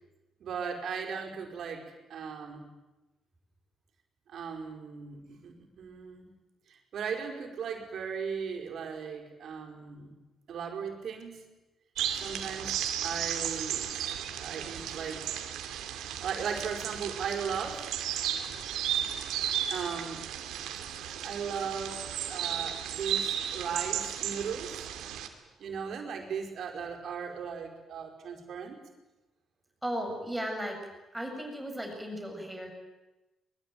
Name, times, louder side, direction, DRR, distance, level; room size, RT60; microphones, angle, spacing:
voice 1, 0.4-1.8 2.1-2.7 4.3-6.3 6.7-10.2 10.5-11.4 12.2-14.1 14.4-15.4 16.2-17.9 19.7-20.2 21.2-22.0 22.3-24.9 25.6-28.8, right 6 dB, 65° right, 3 dB, 5.0 m, -37 dB
sound 1, 12.0-25.3, right 10 dB, 90° right, 2.8 m, -34 dB
voice 2, 29.8-30.8 31.1-32.7, equal, 5° right, 2 dB, 7.2 m, -35 dB
23.0 x 21.5 x 9.4 m, 1.1 s
cardioid pair, 90°, 0 cm